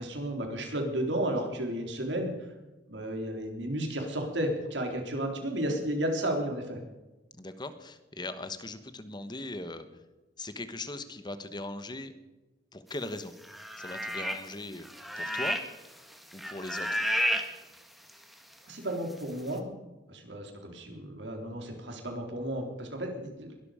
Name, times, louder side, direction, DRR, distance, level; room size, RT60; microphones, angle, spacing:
voice 1, 0.0-2.3 2.9-6.8 18.7-19.7 20.1-23.5, right 1 dB, 85° right, 3 dB, 3.7 m, -33 dB
voice 2, 7.4-9.9 10.4-12.1 12.7-13.3 13.8-14.9 15.2-15.6 16.3-17.0, left 2 dB, 25° left, 10 dB, 1.2 m, -39 dB
sound 1, 13.4-14.5 14.8-15.9 16.1-17.4 18.1-18.2, equal, ahead, 1.6 m, -31 dB
21.5 x 13.0 x 5.1 m, 1.1 s
head